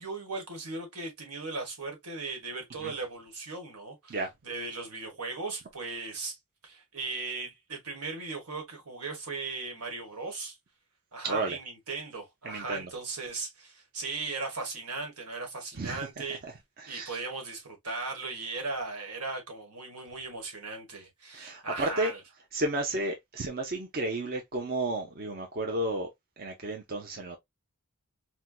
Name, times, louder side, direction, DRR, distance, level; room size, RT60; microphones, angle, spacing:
voice 1, 0.0-4.2 4.4-6.4 6.6-10.6 11.1-16.4 16.9-22.2, right 3 dB, 80° right, 1.5 m, -37 dB
voice 2, 11.2-11.6 12.4-12.9 15.7-16.0 16.4-16.5 16.8-17.2 21.3-22.1 22.5-26.1 26.4-27.4, right 2 dB, 40° right, 0.7 m, -32 dB
4.4 x 2.2 x 2.3 m
head